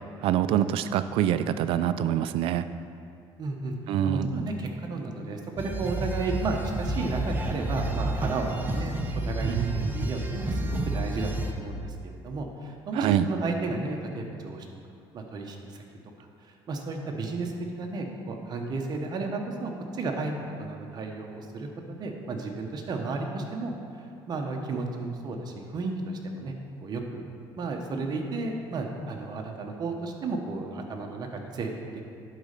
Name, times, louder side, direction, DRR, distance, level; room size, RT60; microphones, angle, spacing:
voice 1, 0.2-2.7 3.9-4.3 9.5-9.9 12.9-13.3, right 10 dB, 70° right, 12 dB, 0.4 m, -25 dB
voice 2, 3.4-3.8 4.0-9.0 9.2-14.7 15.1-15.8 16.7-20.3 20.6-23.7 24.3-26.5 26.8-27.3 27.6-32.0, right 3 dB, 45° right, 2 dB, 1.1 m, -33 dB
sound 1, 5.6-11.5, right 1 dB, 20° right, 0.8 m, -30 dB
10.5 x 4.2 x 5.2 m, 2.5 s
cardioid pair, 110°, 10 cm